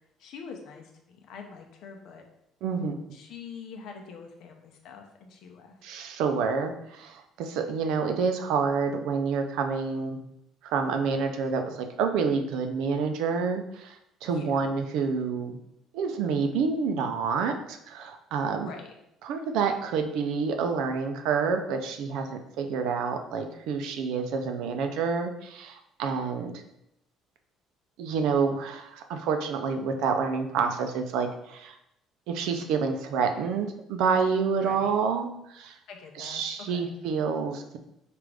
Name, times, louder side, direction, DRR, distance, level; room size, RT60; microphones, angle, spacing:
voice 1, 0.2-2.2 3.1-5.8 10.8-10.9 14.3-14.7 18.6-18.9 34.6-34.9 35.9-36.4 36.7-36.9, left 5 dB, 60° left, 3 dB, 0.7 m, -44 dB
voice 2, 2.6-2.9 5.8-10.2 10.6-15.6 15.9-18.7 19.2-26.5 28.0-31.8 32.3-35.8 36.2-37.8, right 5 dB, 75° right, 6 dB, 0.5 m, -28 dB
4.8 x 2.5 x 3.3 m, 0.81 s
cardioid pair, 155°, 0 cm